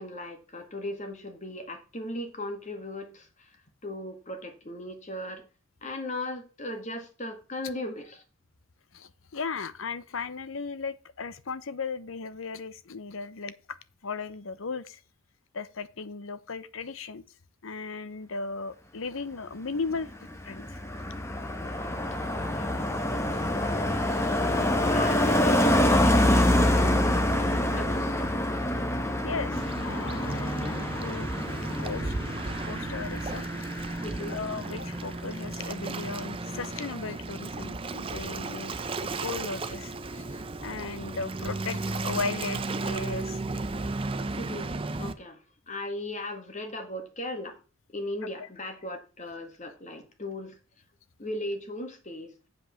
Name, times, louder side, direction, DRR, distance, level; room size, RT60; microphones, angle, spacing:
voice 1, 0.0-3.6 3.8-5.5 5.8-8.2 22.3-22.8 23.3-24.1 24.6-27.4 27.7-28.3 34.0-34.4 44.3-47.6 47.9-50.6 51.2-52.3, left 1 dB, 35° left, 1.9 m, -37 dB
voice 2, 8.9-13.8 14.0-15.0 15.5-17.2 17.6-20.1 20.4-20.8 23.3-23.4 29.2-31.3 31.8-32.1 32.4-33.7 34.3-43.4 48.4-48.5, left 4 dB, 70° left, 0.8 m, -36 dB
Car passing by, 19.9-34.7 35.0-35.3, left 1 dB, 15° left, 1.0 m, -26 dB
Waves surf, 29.5-45.1, right 3 dB, 25° right, 0.6 m, -34 dB
7.9 x 5.3 x 6.4 m
head